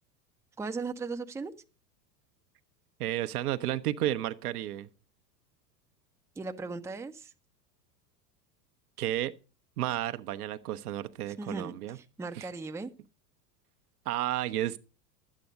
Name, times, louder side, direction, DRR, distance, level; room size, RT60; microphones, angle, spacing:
voice 1, 0.6-1.5 6.4-7.3 11.4-12.9, right 4 dB, 5° right, 0.6 m, -37 dB
voice 2, 3.0-4.9 9.0-9.3 9.8-12.0 12.3-12.5 14.1-14.8, right 13 dB, 60° right, 0.9 m, -32 dB
12.0 x 8.5 x 5.2 m
figure-of-eight pair, 85°, 50 cm